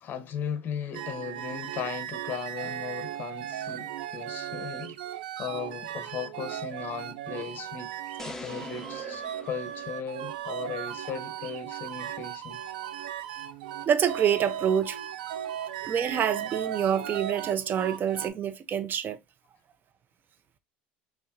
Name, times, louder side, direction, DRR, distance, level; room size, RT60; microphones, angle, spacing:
voice 1, 0.0-5.0 5.4-7.9 8.2-12.6, left 7 dB, 45° left, 0.9 m, -37 dB
sound 1, 0.9-18.3, right 10 dB, 85° right, 0.6 m, -37 dB
sound 2, 8.2-10.5, left 2 dB, 10° left, 0.8 m, -43 dB
voice 2, 13.9-15.0 15.6-19.2, right 8 dB, 40° right, 0.8 m, -27 dB
6.4 x 2.5 x 2.7 m
hypercardioid pair, 85°, 5 cm